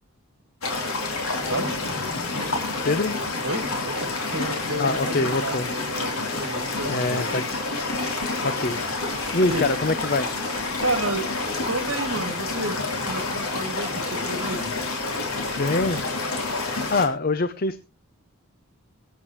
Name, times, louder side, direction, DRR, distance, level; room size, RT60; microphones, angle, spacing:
sound 1, 0.6-17.1, left 3 dB, 85° left, 3.4 m, -28 dB
voice 1, 2.8-3.2 4.8-5.7 6.9-7.4 8.4-8.8 9.3-10.3 15.6-16.0 16.9-17.8, left 2 dB, 40° left, 12 dB, 0.6 m, -24 dB
voice 2, 3.4-7.3 9.5-9.7 10.8-11.3 11.7-12.8 13.1-14.7, right 2 dB, 70° right, 8 dB, 2.2 m, -31 dB
sound 2, 6.7-12.3, left 2 dB, 65° left, 3.8 m, -42 dB
23.5 x 8.3 x 3.1 m, 0.30 s
head